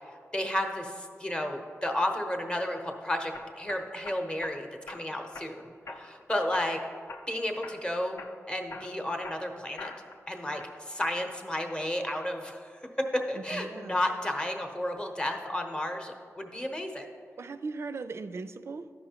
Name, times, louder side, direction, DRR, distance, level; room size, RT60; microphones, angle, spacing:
voice 1, 0.3-6.8 7.3-9.9 10.3-17.1, left 1 dB, 15° left, 3 dB, 0.8 m, -32 dB
sound 1, 2.4-2.8 3.3-4.6 4.9-5.5 5.9-6.2 6.5-7.3 7.6-7.9 8.2-10.2 10.6-11.1, left 3 dB, 60° left, 0.6 m, -44 dB
voice 2, 13.3-14.0 17.4-18.9, right 4 dB, 55° right, 11 dB, 0.4 m, -38 dB
13.0 x 5.4 x 2.9 m, 2.2 s
wide cardioid pair, 90°, 5 cm